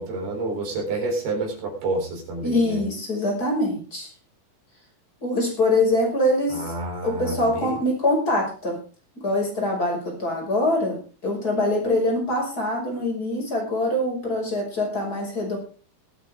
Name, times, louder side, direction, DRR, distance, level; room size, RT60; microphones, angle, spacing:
voice 1, 0.0-2.8 6.5-7.8, right 2 dB, 80° right, 1 dB, 6.1 m, -29 dB
voice 2, 2.4-4.1 5.2-6.7 7.0-8.7 9.2-11.0 11.2-15.6, left 1 dB, 25° left, 0 dB, 6.2 m, -24 dB
21.5 x 9.0 x 3.7 m, 0.37 s
omnidirectional pair, 4.4 m